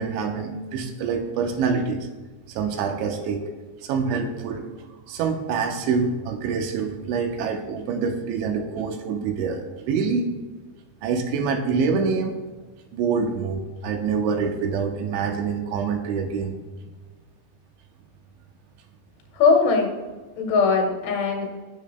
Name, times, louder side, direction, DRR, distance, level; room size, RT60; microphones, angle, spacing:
voice 1, 0.0-2.1 2.5-3.5 3.8-4.7 5.1-10.3 11.0-12.4 12.9-16.6, right 5 dB, 80° right, 5 dB, 3.2 m, -26 dB
voice 2, 19.3-20.0 20.4-21.5, left 4 dB, 85° left, 1 dB, 4.1 m, -20 dB
19.0 x 7.2 x 2.3 m, 1.3 s
omnidirectional pair, 5.3 m